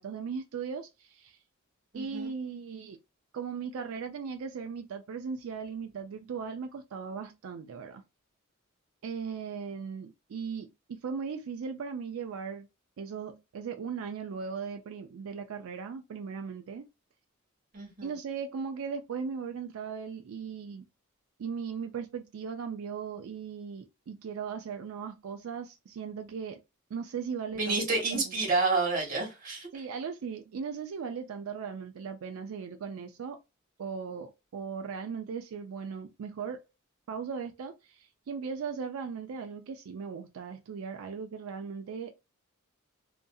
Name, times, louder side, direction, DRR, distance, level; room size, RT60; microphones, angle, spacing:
voice 1, 0.0-1.4 1.9-3.0 3.3-8.0 9.0-12.7 13.0-16.8 18.0-20.9 21.4-26.6 26.9-27.8 28.1-28.3 29.7-33.4 33.8-36.6 37.1-42.1, right 6 dB, 70° right, 0.4 m, -38 dB
voice 2, 1.9-2.3 17.7-18.1 27.6-29.7, right 3 dB, 40° right, 1.6 m, -29 dB
2.6 x 2.6 x 2.3 m
head